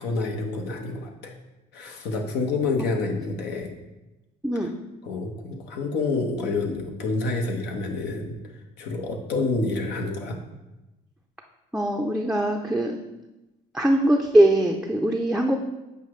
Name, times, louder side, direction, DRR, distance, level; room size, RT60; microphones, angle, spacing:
voice 1, 0.0-1.3 1.7-3.7 5.0-8.3 8.8-10.4, left 3 dB, 85° left, 3 dB, 1.0 m, -28 dB
voice 2, 4.4-4.7 11.7-13.0 13.7-15.6, right 1 dB, 5° right, 2 dB, 0.4 m, -21 dB
8.2 x 4.9 x 3.1 m, 0.99 s
cardioid pair, 110°, 17 cm